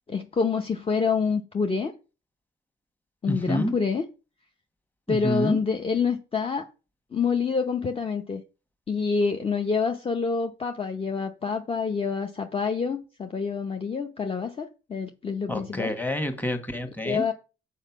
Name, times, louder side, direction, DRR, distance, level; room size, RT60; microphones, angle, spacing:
voice 1, 0.1-1.9 3.2-4.0 5.1-6.7 7.1-8.4 8.9-15.9 17.0-17.3, left 5 dB, 30° left, 0.8 m, -27 dB
voice 2, 3.3-3.7 5.1-5.6 15.5-17.2, equal, 10° left, 1.5 m, -28 dB
6.4 x 4.6 x 6.0 m
cardioid pair, 90°, 20 cm